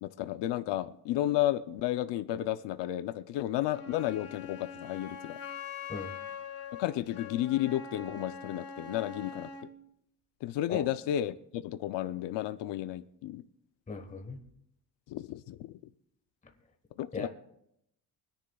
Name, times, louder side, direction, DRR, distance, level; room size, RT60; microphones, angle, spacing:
voice 1, 0.0-5.4 6.8-9.5 10.4-13.4 15.1-15.8 17.0-17.3, left 13 dB, 80° left, 11 dB, 0.7 m, -32 dB
Wind instrument woodwind instrument, 3.7-9.7, left 6 dB, 35° left, 1.5 m, -43 dB
voice 2, 13.9-14.4 17.1-17.3, left 4 dB, 20° left, 4 dB, 1.3 m, -37 dB
24.0 x 10.0 x 2.3 m, 0.75 s
cardioid pair, 160°, 42 cm